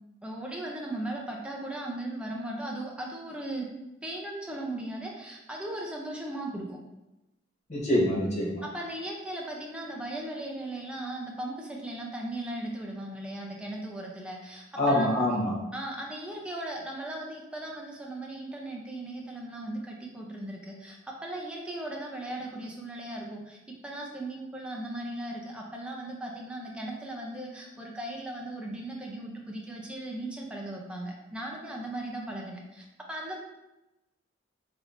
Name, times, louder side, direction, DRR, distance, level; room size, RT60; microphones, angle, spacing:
voice 1, 0.2-3.7 4.0-6.8 8.7-15.1 15.7-33.4, right 1 dB, 5° right, -2 dB, 0.5 m, -37 dB
voice 2, 7.7-8.6 14.8-15.5, left 1 dB, 35° left, -4 dB, 1.0 m, -25 dB
3.8 x 3.5 x 2.6 m, 0.97 s
head